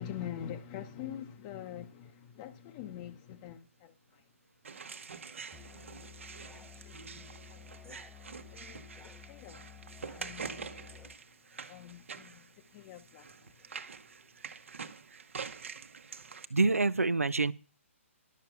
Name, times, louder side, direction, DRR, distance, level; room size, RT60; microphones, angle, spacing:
voice 1, 0.0-4.2 4.7-6.2 6.6-8.1 8.5-9.7 10.1-11.1 11.7-13.7, left 10 dB, 30° left, 0.9 m, -46 dB
sound 1, 4.6-16.5, right 5 dB, 65° right, 1.1 m, -46 dB
Musical instrument, 5.5-11.2, left 8 dB, 10° left, 0.5 m, -53 dB
voice 2, 16.5-17.5, right 3 dB, 85° right, 0.6 m, -26 dB
11.5 x 6.7 x 7.0 m
figure-of-eight pair, 130°, 7 cm